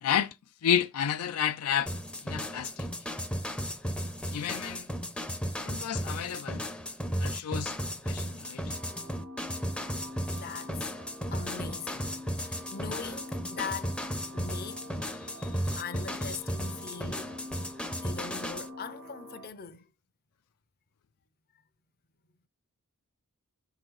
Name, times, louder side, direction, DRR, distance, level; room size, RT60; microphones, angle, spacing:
voice 1, 0.0-0.3 0.6-1.9 2.2-2.9 4.3-4.9 5.6-6.6 7.2-7.8 8.0-8.7, left 9 dB, 85° left, 0.4 m, -30 dB
sound 1, 1.9-18.7, equal, 5° left, 0.5 m, -35 dB
sound 2, 8.7-19.5, left 1 dB, 85° right, 1.6 m, -46 dB
voice 2, 10.3-10.9 11.3-14.1 14.3-17.4 18.0-19.9, left 6 dB, 45° left, 0.7 m, -41 dB
6.2 x 3.8 x 4.7 m
head